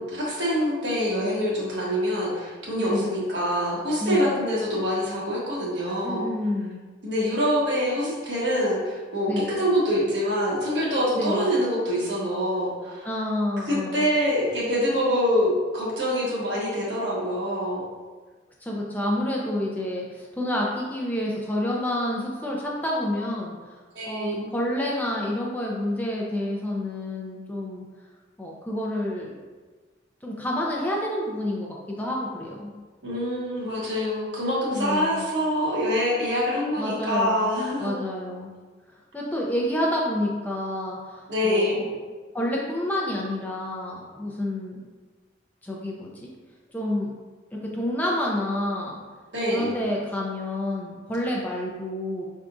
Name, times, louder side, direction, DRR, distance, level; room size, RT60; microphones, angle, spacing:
voice 1, 0.0-6.3 7.0-13.1 13.7-17.8 23.9-24.5 33.0-37.9 41.3-41.9 49.3-49.7, equal, 70° right, -5 dB, 1.4 m, -25 dB
voice 2, 2.8-3.2 4.0-4.4 6.0-6.8 9.3-9.6 11.2-11.5 13.0-14.1 18.6-23.8 24.1-27.8 28.4-29.4 30.2-32.7 34.7-35.3 36.8-37.5 37.8-38.5 38.9-41.9 42.3-44.9 45.6-46.3 46.7-47.1 47.5-49.0 49.5-52.2, left 1 dB, 10° left, -3 dB, 0.5 m, -29 dB
5.7 x 3.5 x 2.6 m, 1.4 s
head